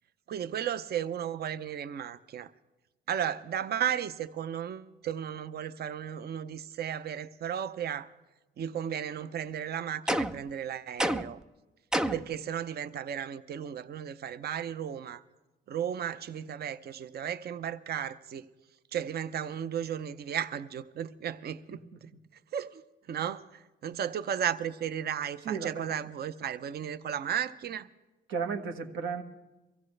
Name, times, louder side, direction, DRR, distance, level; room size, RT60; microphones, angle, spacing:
voice 1, 0.3-2.5 3.1-8.1 8.6-11.4 12.1-15.2 15.7-18.5 18.9-22.1 22.5-22.8 23.1-27.9, right 9 dB, 55° right, 0.7 m, -34 dB
sound 1, 10.1-10.5 11.0-11.4 11.9-12.4, right 1 dB, 5° right, 0.5 m, -29 dB
voice 2, 25.4-26.0 28.3-29.2, right 6 dB, 80° right, 1.5 m, -34 dB
23.0 x 15.5 x 3.3 m
cardioid pair, 90°, 20 cm